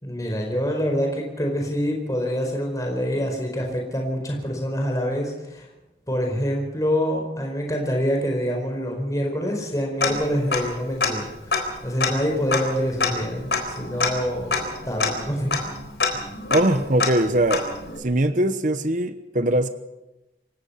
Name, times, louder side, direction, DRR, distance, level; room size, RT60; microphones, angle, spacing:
voice 1, 0.0-5.7 6.1-14.6 14.9-15.6, equal, 20° left, 1 dB, 4.7 m, -26 dB
Tick-tock, 10.0-10.7 11.0-11.1 11.5-18.0, left 4 dB, 75° left, 4.0 m, -26 dB
voice 2, 16.5-17.7 18.0-19.7, right 1 dB, 45° right, 10 dB, 1.0 m, -21 dB
27.5 x 17.0 x 5.8 m, 0.97 s
head